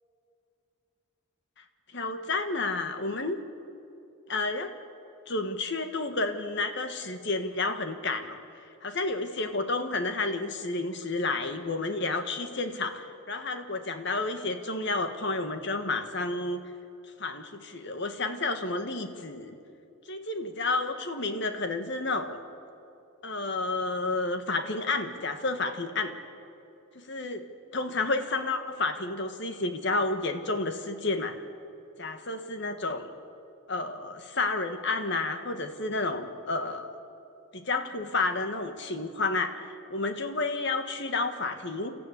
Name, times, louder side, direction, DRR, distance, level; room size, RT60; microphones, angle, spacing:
voice 1, 1.9-3.4 4.3-4.7 5.3-8.4 8.8-16.6 17.2-19.5 20.1-22.4 23.2-26.1 26.9-27.4 27.7-31.3 32.0-33.1 33.7-36.9 37.5-41.9, left 3 dB, 55° left, 8 dB, 1.7 m, -30 dB
28.5 x 14.0 x 9.8 m, 2.7 s
head